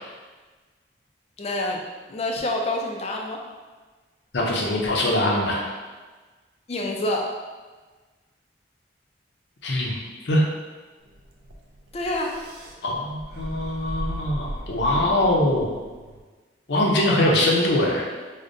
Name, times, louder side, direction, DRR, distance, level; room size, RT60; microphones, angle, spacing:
voice 1, 1.4-3.4 6.7-7.4 11.9-12.4, left 1 dB, 35° left, 1 dB, 0.4 m, -27 dB
voice 2, 4.3-5.6 9.6-10.0 10.2-10.5 12.8-15.8 16.7-18.1, left 1 dB, 75° left, -2 dB, 0.7 m, -22 dB
sound 1, 11.1-16.2, right 1 dB, 60° right, 0.4 m, -37 dB
4.9 x 2.1 x 2.6 m, 1.3 s
head